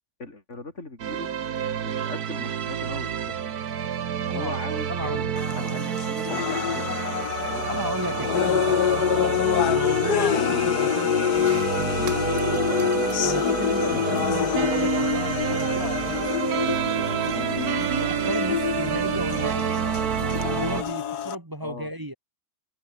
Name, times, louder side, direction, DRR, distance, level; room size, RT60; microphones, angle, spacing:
voice 1, 0.2-1.3 1.8-3.5 4.3-8.5 13.9-14.6 21.6-21.9, left 2 dB, 45° left, 4.4 m, -39 dB
sound 1, 1.0-20.8, right 8 dB, 75° right, 1.7 m, -28 dB
voice 2, 4.3-5.8 7.7-9.3 9.6-11.5 11.9-12.2 13.2-16.3 17.4-19.8 20.5-22.1, equal, 15° right, 1.6 m, -34 dB
sound 2, 5.4-21.4, left 9 dB, 80° left, 1.6 m, -26 dB
sound 3, 11.3-20.9, right 6 dB, 55° right, 1.7 m, -41 dB
omnidirectional pair, 1.7 m